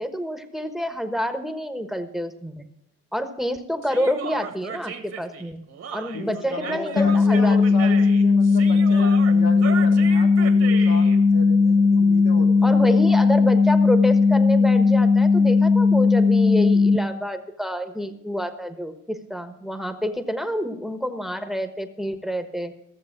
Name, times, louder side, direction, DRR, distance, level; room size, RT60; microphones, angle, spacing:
voice 1, 0.0-2.7 3.1-5.6 5.9-7.6 12.6-22.7, equal, ahead, 9 dB, 1.2 m, -28 dB
Human voice, 3.8-11.2, right 8 dB, 55° right, 1.7 m, -35 dB
voice 2, 6.1-13.0, left 3 dB, 85° left, 1 dB, 2.3 m, -35 dB
sound 1, 7.0-17.0, left 4 dB, 45° left, 1.2 m, -17 dB
15.5 x 7.2 x 5.9 m, 0.79 s
cardioid pair, 90°, 30 cm